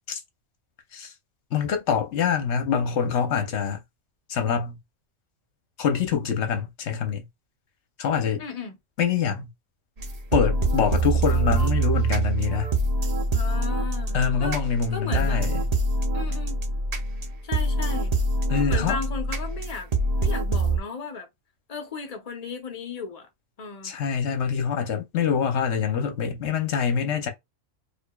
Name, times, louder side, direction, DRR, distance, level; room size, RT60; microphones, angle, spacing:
voice 1, 1.5-3.8 4.3-4.8 5.8-7.2 8.0-8.4 9.0-9.5 10.3-12.8 14.1-15.6 18.5-19.0 23.8-27.3, left 7 dB, 60° left, 1.0 m, -25 dB
voice 2, 8.4-8.8 13.3-14.6 14.9-15.4 16.1-16.6 17.4-18.1 18.7-19.9 20.2-21.3 21.7-23.3 23.6-23.9, left 4 dB, 35° left, 0.8 m, -35 dB
sound 1, 10.0-20.8, right 2 dB, 40° right, 0.6 m, -25 dB
4.7 x 2.5 x 2.3 m
omnidirectional pair, 1.4 m